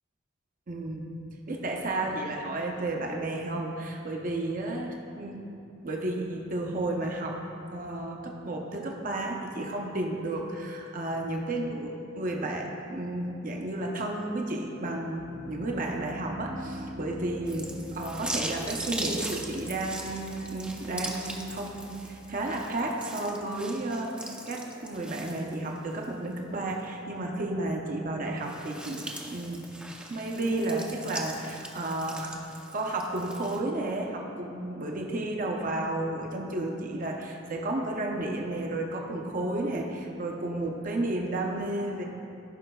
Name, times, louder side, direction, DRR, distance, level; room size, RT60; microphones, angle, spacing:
voice 1, 0.7-1.1 1.5-5.4 5.8-7.4 7.7-24.1 24.5-29.6 30.1-32.4 32.7-42.0, right 2 dB, 45° right, 0 dB, 0.7 m, -32 dB
Piano, 15.2-22.7, equal, 75° right, 1.1 m, -44 dB
sound 1, 17.5-26.0 26.5-26.6 28.3-33.6, right 1 dB, 5° right, 0.5 m, -40 dB
14.0 x 5.6 x 2.3 m, 2.6 s
head